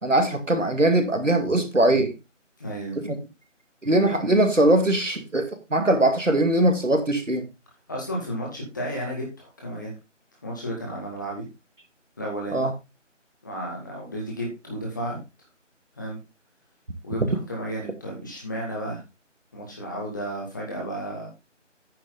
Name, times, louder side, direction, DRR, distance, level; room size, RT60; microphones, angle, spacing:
voice 1, 0.0-2.2 3.0-3.2 3.8-7.5 12.5-12.7, right 1 dB, 75° right, 2.4 m, -21 dB
voice 2, 2.6-3.0 7.9-9.9 10.4-11.5 12.2-12.6 13.4-15.2 16.0-16.2 17.0-19.0 19.5-21.3, equal, 15° left, 2.2 m, -33 dB
9.4 x 6.9 x 3.9 m
figure-of-eight pair, 165°, 37 cm